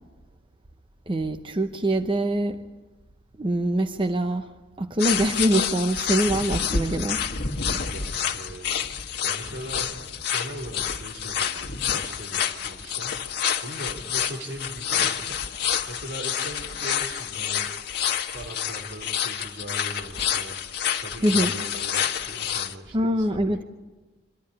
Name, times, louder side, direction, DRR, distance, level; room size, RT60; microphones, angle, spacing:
voice 1, 1.1-2.6 3.4-4.5 4.8-7.2 21.2-21.5 22.9-23.6, right 1 dB, 30° right, 7 dB, 0.8 m, -24 dB
sound 1, 5.0-22.7, left 8 dB, 60° left, 1.4 m, -28 dB
voice 2, 7.9-8.9 9.2-13.2 13.6-17.7 18.3-20.6 21.0-23.6, right 1 dB, 80° right, 2 dB, 3.5 m, -40 dB
25.5 x 13.0 x 10.0 m, 1.2 s
head